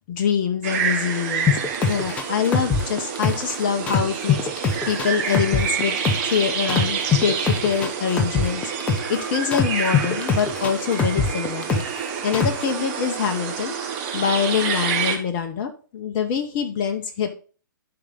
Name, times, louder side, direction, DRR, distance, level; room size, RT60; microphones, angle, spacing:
voice 1, 0.1-1.5 1.8-5.9 6.2-8.6 9.1-11.8 12.2-17.3, left 7 dB, 35° left, 4 dB, 1.0 m, -25 dB
sound 1, 0.6-15.2, right 7 dB, 35° right, 1.7 m, -28 dB
sound 2, 1.5-3.6 3.9-6.4 6.7-9.2 9.5-12.0 12.3-12.7, left 5 dB, 15° left, 0.9 m, -22 dB
12.0 x 4.9 x 3.9 m, 0.37 s
figure-of-eight pair, 120°, 11 cm